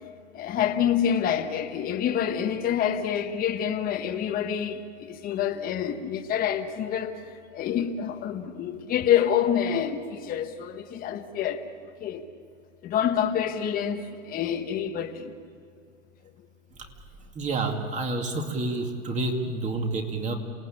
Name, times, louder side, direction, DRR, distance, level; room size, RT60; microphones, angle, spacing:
voice 1, 0.3-7.2 7.5-11.6 12.0-12.2 12.8-15.3, left 9 dB, 20° left, 1.3 m, -27 dB
voice 2, 17.4-20.4, right 2 dB, 20° right, 2.3 m, -29 dB
27.5 x 18.5 x 8.7 m
hypercardioid pair, 140°, 39 cm